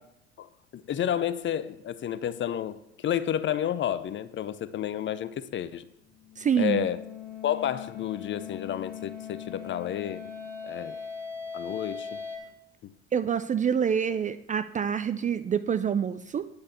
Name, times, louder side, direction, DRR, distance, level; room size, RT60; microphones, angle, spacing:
voice 1, 0.7-5.9 6.6-7.0 7.4-10.2 10.6-11.0 11.5-12.2 12.8-12.9, left 10 dB, 35° left, 14 dB, 0.7 m, -30 dB
sound 1, 6.1-12.4, left 6 dB, 10° left, 4.7 m, -40 dB
voice 2, 6.4-6.9 13.1-16.5, right 7 dB, 25° right, 14 dB, 0.5 m, -27 dB
9.8 x 6.8 x 6.9 m, 0.79 s
hypercardioid pair, 70°, 33 cm